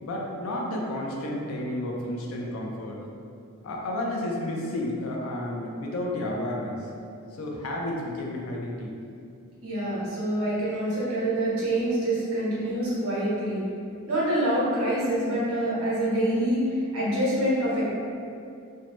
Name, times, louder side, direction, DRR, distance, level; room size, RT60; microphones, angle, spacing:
voice 1, 0.0-3.0 3.6-6.9 7.3-8.9, left 1 dB, 75° left, -1 dB, 0.5 m, -31 dB
voice 2, 9.6-13.6 14.1-17.8, right 1 dB, 80° right, -8 dB, 1.0 m, -26 dB
2.6 x 2.1 x 2.9 m, 2.5 s
head